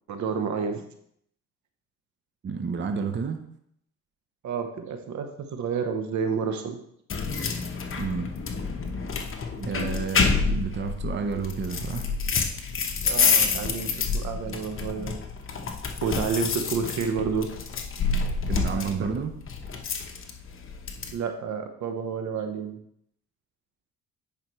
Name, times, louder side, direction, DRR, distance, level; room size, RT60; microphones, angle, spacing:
voice 1, 0.1-0.8 4.4-6.8 13.1-15.2 16.0-17.5 18.6-19.1 21.1-22.8, right 6 dB, 70° right, 7 dB, 0.9 m, -30 dB
voice 2, 2.4-3.4 8.0-8.3 9.6-12.1 18.5-19.4, right 5 dB, 35° right, 6 dB, 0.8 m, -30 dB
sound 1, 7.1-21.1, left 5 dB, 45° left, 1.0 m, -28 dB
9.4 x 5.1 x 3.1 m, 0.70 s
cardioid pair, 90°, 30 cm